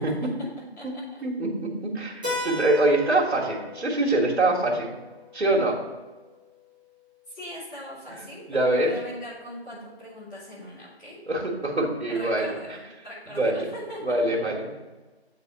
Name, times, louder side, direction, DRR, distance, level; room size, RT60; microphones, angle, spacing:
voice 1, 1.2-4.9 5.3-5.8 8.5-8.9 11.3-12.5 13.3-13.7 14.0-14.7, right 2 dB, 85° right, -4 dB, 1.9 m, -24 dB
Keyboard (musical), 2.2-6.7, left 2 dB, 10° right, 0.8 m, -37 dB
voice 2, 7.3-11.2 12.1-14.2, equal, 20° left, -11 dB, 2.8 m, -40 dB
8.4 x 4.1 x 5.6 m, 1.2 s
figure-of-eight pair, 165°, 33 cm